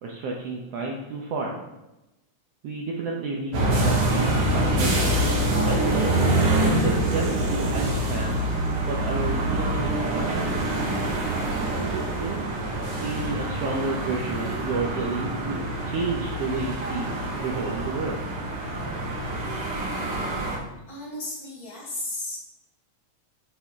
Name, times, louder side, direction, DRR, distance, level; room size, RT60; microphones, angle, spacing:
voice 1, 0.0-1.6 2.6-6.1 6.5-8.4 8.9-10.3 11.8-12.4 13.0-17.2 17.4-18.2, right 3 dB, 75° right, -2 dB, 1.5 m, -31 dB
sound 1, 3.5-20.6, right 1 dB, 55° right, 1.8 m, -25 dB
voice 2, 20.9-22.4, left 1 dB, 35° left, -5 dB, 2.0 m, -34 dB
9.2 x 3.5 x 3.7 m, 0.96 s
omnidirectional pair, 3.5 m